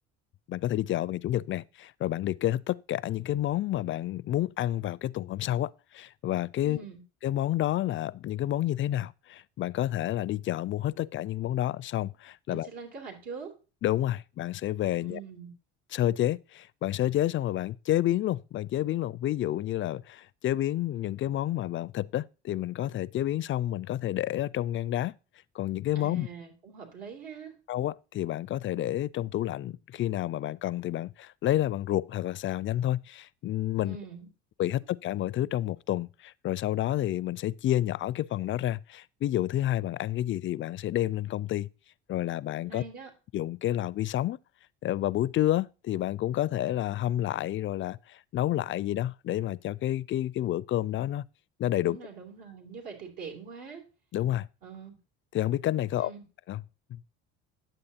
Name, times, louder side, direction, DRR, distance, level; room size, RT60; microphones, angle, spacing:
voice 1, 0.5-6.8 7.2-12.7 13.8-15.2 15.9-25.1 25.5-26.3 27.7-34.0 34.6-41.7 42.1-42.8 43.3-44.4 44.8-51.2 51.6-52.0 54.1-54.5 55.3-56.1 56.5-56.6 56.9-57.0, left 13 dB, 35° left, 0.4 m, -29 dB
voice 2, 6.6-7.0 12.5-13.5 15.0-15.5 25.9-27.5 33.8-34.3 34.7-34.8 42.7-43.1 51.8-53.8 54.6-55.0 55.9-56.2, right 5 dB, 70° right, 3.1 m, -43 dB
10.0 x 7.7 x 2.8 m
hypercardioid pair, 70°, 34 cm